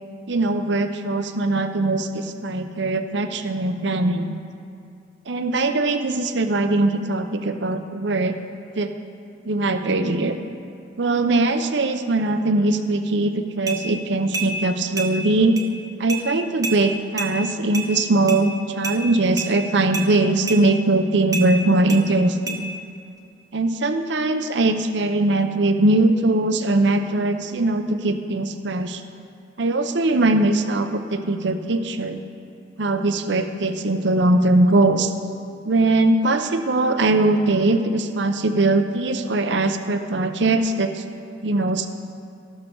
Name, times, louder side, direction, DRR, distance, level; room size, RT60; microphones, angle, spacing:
voice 1, 0.3-4.4 5.3-8.3 8.8-8.9 9.4-10.4 11.0-15.6 16.0-22.7 23.5-29.0 29.6-32.2 32.8-35.1 35.7-41.0 41.4-41.9, right 2 dB, 65° right, 8 dB, 0.7 m, -21 dB
sound 1, 13.7-13.8 14.3-14.5 15.0-15.1 15.6-15.7 16.1-16.2 16.6-16.8 17.2-17.3 17.7-17.9 18.3-18.4 18.8-19.0 19.4-19.5 19.9-20.1 20.5-20.6 21.3-21.5 21.9-22.0 22.5-22.6, right 4 dB, 20° right, 0.8 m, -28 dB
13.0 x 12.0 x 3.8 m, 2.4 s
head